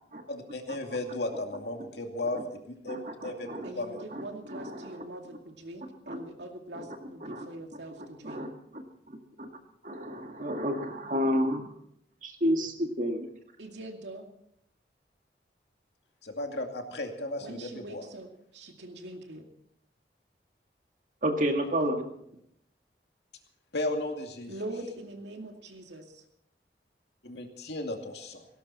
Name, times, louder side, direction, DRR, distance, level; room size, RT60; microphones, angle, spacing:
voice 1, 0.3-2.4 2.7-3.5 3.8-4.0 16.2-18.0 23.7-24.5 27.2-28.5, left 2 dB, 75° left, 4 dB, 2.4 m, -35 dB
voice 2, 2.9-3.7 4.0-4.2 4.5-5.0 6.1-6.2 6.7-6.9 7.2-7.5 8.2-8.5 8.7-8.8 9.1-9.5 9.8-11.7 12.2-13.3 21.2-22.1, equal, 45° right, 4 dB, 2.0 m, -31 dB
voice 3, 3.6-8.5 13.6-14.3 17.4-19.4 21.8-22.0 24.5-26.2, right 1 dB, 85° right, 3 dB, 2.4 m, -43 dB
18.0 x 17.5 x 4.2 m, 0.73 s
head